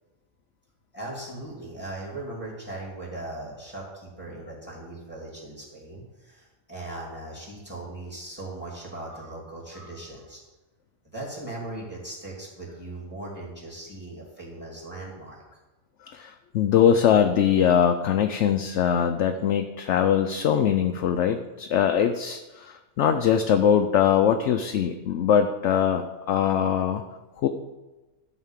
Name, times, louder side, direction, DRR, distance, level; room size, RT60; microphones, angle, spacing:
voice 1, 0.9-10.4 11.1-15.4, right 2 dB, 10° right, -3 dB, 2.9 m, -39 dB
voice 2, 16.1-27.0 27.4-27.5, left 8 dB, 70° left, 6 dB, 0.9 m, -22 dB
12.5 x 4.1 x 7.3 m, 1.1 s
omnidirectional pair, 1.4 m